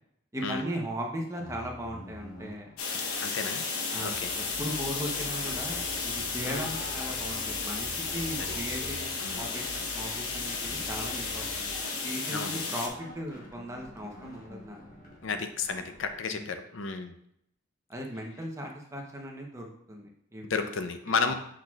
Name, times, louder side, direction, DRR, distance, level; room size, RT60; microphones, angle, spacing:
voice 1, 0.3-2.7 3.9-9.6 9.9-11.6 12.0-15.1 16.3-16.6 17.9-20.7 21.3-21.4, equal, 15° right, 0 dB, 0.9 m, -38 dB
sound 1, 1.4-16.1, left 1 dB, 40° left, 1.1 m, -47 dB
sound 2, 2.8-12.9, left 4 dB, 90° left, 1.0 m, -33 dB
voice 2, 3.2-3.6 4.0-4.3 6.5-6.7 9.2-9.5 12.3-12.6 15.2-17.1 20.5-21.3, left 5 dB, 60° left, 8 dB, 0.5 m, -32 dB
6.4 x 6.2 x 2.4 m, 0.73 s
head